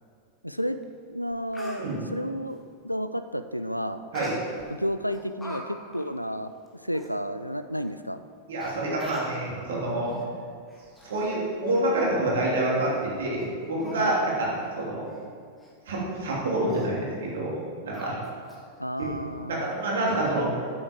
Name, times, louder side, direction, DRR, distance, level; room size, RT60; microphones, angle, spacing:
voice 1, 0.4-0.8 1.1-4.0 4.7-6.5 6.8-8.2 14.0-14.1 18.8-19.7, equal, 90° left, 10 dB, 0.3 m, -31 dB
Speech, 0.8-0.9 1.3-1.8 4.1-4.7 5.1-5.6 5.9-6.1 6.7-6.8 6.9-7.1 7.9-8.0 8.6-8.7 9.0-9.4 10.0-10.2 10.7-11.4 11.7-11.8 12.3-12.4 12.9-13.0 13.4-13.5 13.8-14.2 14.5-14.7 15.0-15.2 15.6-15.7 16.1-16.3 16.7-16.9 17.9-18.6 19.0-19.1, left 2 dB, 10° left, 1.7 m, -43 dB
voice 2, 8.5-10.1 11.0-15.0 15.9-17.6 17.8-18.2 19.0-19.1 19.5-20.7, right 1 dB, 60° right, -4 dB, 2.8 m, -27 dB
8.8 x 7.9 x 5.1 m, 2.1 s
figure-of-eight pair, 90°, 0 cm